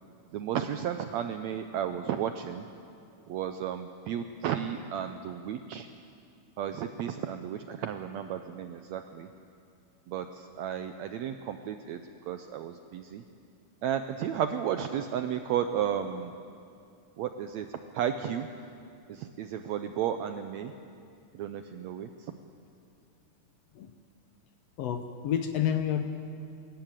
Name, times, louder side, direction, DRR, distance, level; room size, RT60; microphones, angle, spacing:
voice 1, 0.3-2.7 3.3-5.9 6.6-9.3 10.1-13.2 13.8-16.3 17.2-18.5 19.1-20.7 21.3-22.3, right 9 dB, 75° right, 8 dB, 1.6 m, -33 dB
voice 2, 24.8-26.0, left 9 dB, 70° left, 7 dB, 1.5 m, -29 dB
24.5 x 14.0 x 8.9 m, 2.5 s
omnidirectional pair, 3.8 m